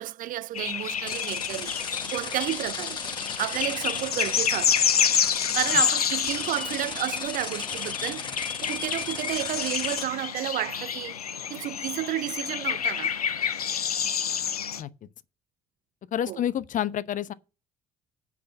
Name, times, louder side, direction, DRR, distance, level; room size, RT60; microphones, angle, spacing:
voice 1, 0.0-1.8 2.1-3.0 3.4-4.8 5.5-8.4 8.6-11.2 11.5-13.1 16.3-16.4, right 14 dB, 50° right, 0.5 m, -31 dB
sound 1, 0.5-14.8, left 8 dB, 90° left, 0.4 m, -28 dB
sound 2, 1.1-10.0, left 4 dB, 25° left, 1.3 m, -36 dB
voice 2, 14.8-15.1 16.1-17.3, left 10 dB, 45° left, 0.8 m, -29 dB
8.5 x 5.9 x 6.9 m
figure-of-eight pair, 50°, 19 cm